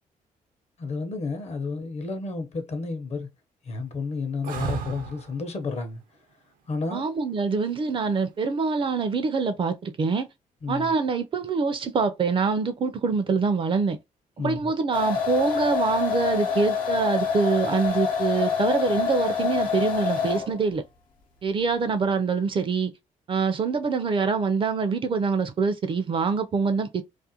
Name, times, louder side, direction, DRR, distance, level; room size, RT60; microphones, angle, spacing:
voice 1, 0.8-3.3 3.6-6.0 6.7-7.1 10.6-10.9 14.4-14.7, left 4 dB, 50° left, 0.7 m, -31 dB
sound 1, 4.4-5.4 8.0-8.6, right 5 dB, 85° right, 0.6 m, -33 dB
voice 2, 6.9-10.3 10.7-14.0 14.4-20.8 21.4-22.9 23.3-27.0, right 4 dB, 40° right, 0.4 m, -25 dB
sound 2, 14.9-20.6, left 6 dB, 85° left, 0.7 m, -26 dB
2.4 x 2.1 x 2.7 m
cardioid pair, 105°, 14 cm